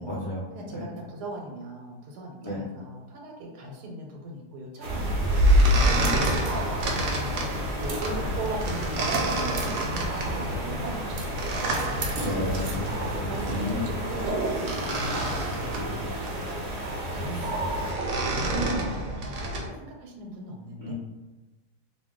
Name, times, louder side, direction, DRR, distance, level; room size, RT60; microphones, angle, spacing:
voice 1, 0.0-0.9 2.4-2.6 5.9-6.5 12.2-13.9 15.1-16.1 17.3-17.4 20.8-20.9, left 1 dB, 35° left, -8 dB, 0.4 m, -34 dB
voice 2, 0.5-6.0 6.8-7.3 7.8-11.7 12.0-12.6 13.2-14.7 16.1-17.8 18.4-19.1 19.4-20.9, right 1 dB, 85° right, 1 dB, 1.2 m, -39 dB
sound 1, 4.8-17.9, right 1 dB, 50° right, 0.6 m, -35 dB
sound 2, 4.9-19.7, right 1 dB, 70° right, 0.9 m, -27 dB
2.5 x 2.1 x 3.6 m, 1.1 s
omnidirectional pair, 1.7 m